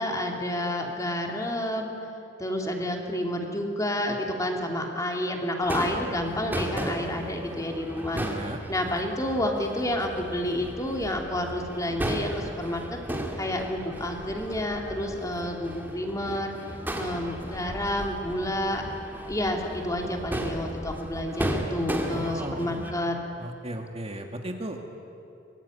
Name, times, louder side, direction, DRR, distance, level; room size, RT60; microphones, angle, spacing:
voice 1, 0.0-1.9 2.4-8.2 8.7-12.8 13.4-16.5 16.9-18.8 19.3-23.2, left 1 dB, 20° left, 1 dB, 3.0 m, -29 dB
Crowd / Fireworks, 5.6-22.9, right 1 dB, 10° right, 2.6 m, -35 dB
voice 2, 8.1-8.6 22.1-22.8 23.4-24.8, right 1 dB, 35° right, 4 dB, 1.9 m, -36 dB
24.5 x 21.5 x 9.7 m, 2.6 s
head